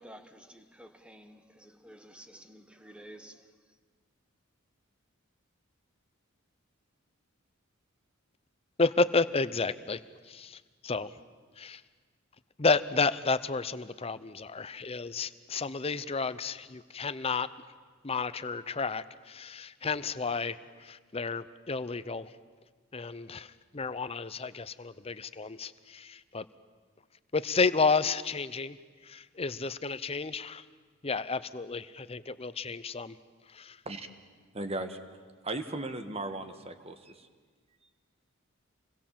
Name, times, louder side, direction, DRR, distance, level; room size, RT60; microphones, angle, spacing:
voice 1, 0.0-3.8, equal, 5° right, 1.2 m, -52 dB
voice 2, 8.8-10.0 10.3-11.1 11.6-11.8 12.6-17.5 18.0-22.3 22.9-26.4 27.3-28.8 29.0-30.6 31.0-33.2 33.5-33.8, left 4 dB, 30° left, 0.7 m, -31 dB
voice 3, 34.5-35.0 35.4-37.3, right 2 dB, 30° right, 1.5 m, -36 dB
27.5 x 21.0 x 7.6 m
head